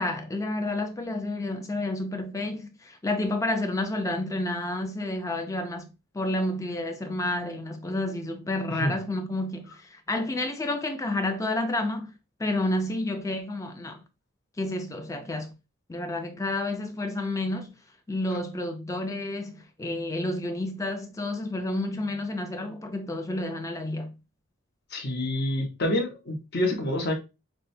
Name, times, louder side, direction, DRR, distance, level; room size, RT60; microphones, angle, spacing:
voice 1, 0.0-12.1 12.4-14.0 14.6-15.5 15.9-17.8 18.1-24.1, left 2 dB, 15° left, 0.4 m, -30 dB
voice 2, 24.9-27.1, left 1 dB, 50° left, 1.0 m, -27 dB
6.0 x 2.1 x 2.6 m
head